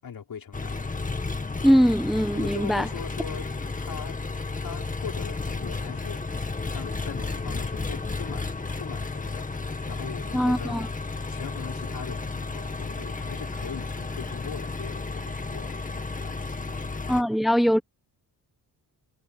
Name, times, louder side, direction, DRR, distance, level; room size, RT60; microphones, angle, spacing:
voice 1, 0.0-0.8 2.3-3.5 3.8-4.2 4.6-6.2 6.7-9.4 9.7-10.9 11.3-16.8, left 7 dB, 60° left, 5.7 m, -41 dB
Engine, 0.5-17.2, left 3 dB, 20° left, 2.0 m, -33 dB
voice 2, 1.6-2.9 10.3-10.9 17.1-17.8, equal, ahead, 1.2 m, -21 dB
cardioid pair, 100°, 39 cm